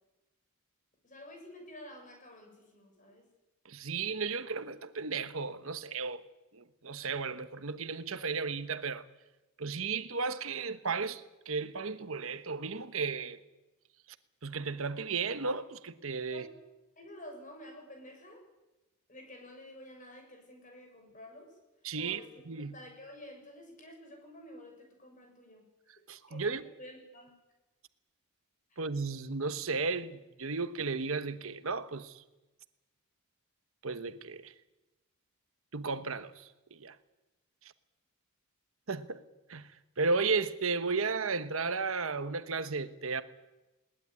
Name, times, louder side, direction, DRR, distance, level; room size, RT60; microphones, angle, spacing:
voice 1, 1.0-3.2 16.3-16.5 17.0-18.4 19.1-21.5 22.0-25.7 26.3-27.3 28.7-28.8, left 1 dB, 35° left, 6.9 m, -50 dB
voice 2, 3.7-6.2 6.5-9.0 9.6-13.4 14.4-16.5 21.8-22.2 22.5-22.7 26.1-26.7 28.8-32.2 33.8-34.5 35.7-36.3 36.7-37.0 38.9-39.2 39.5-39.7 40.0-43.2, right 4 dB, 70° right, 1.2 m, -34 dB
21.0 x 18.5 x 9.7 m
head